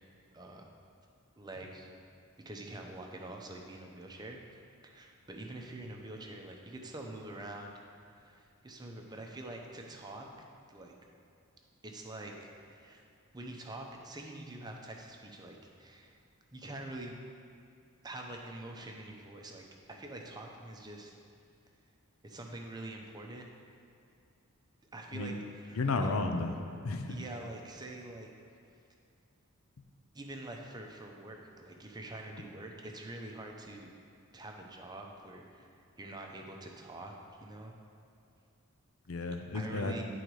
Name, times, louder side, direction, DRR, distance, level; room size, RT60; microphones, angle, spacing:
voice 1, 0.3-0.7 1.4-1.9 2.4-10.3 10.7-10.9 11.8-13.0 13.3-16.2 16.5-17.1 18.0-21.2 22.2-23.4 24.9-25.9 27.1-28.3 30.1-33.9 34.3-37.7 39.5-40.0, right 1 dB, 20° right, 1 dB, 0.7 m, -45 dB
voice 2, 25.8-26.5 26.8-27.2 39.1-39.9, left 3 dB, 70° left, 5 dB, 0.6 m, -32 dB
10.5 x 3.9 x 4.7 m, 2.5 s
head